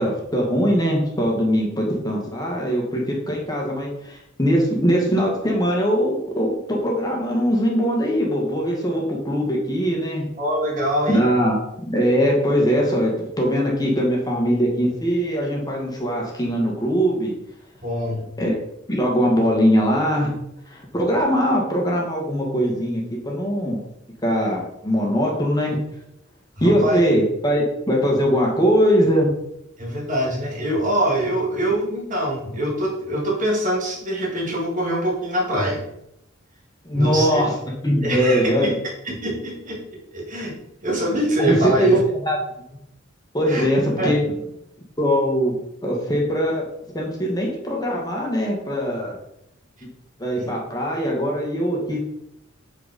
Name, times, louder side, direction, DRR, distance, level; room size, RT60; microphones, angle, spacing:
voice 1, 0.0-10.3 11.1-17.3 18.4-18.5 18.9-20.4 20.7-23.8 24.2-25.8 26.6-29.3 36.8-37.5 37.8-38.7 41.4-42.4 43.3-44.2 45.0-45.6 45.8-46.6 46.9-49.2 50.2-52.0, equal, 20° left, -2 dB, 1.7 m, -21 dB
voice 2, 10.4-11.2 17.8-18.3 26.6-27.0 29.8-35.8 36.9-37.4 38.0-38.7 39.0-39.8 40.1-40.5 40.8-42.0 43.5-43.7 44.0-44.1 50.3-50.5, right 1 dB, 40° right, -2 dB, 2.1 m, -24 dB
8.9 x 4.6 x 4.2 m, 0.80 s
head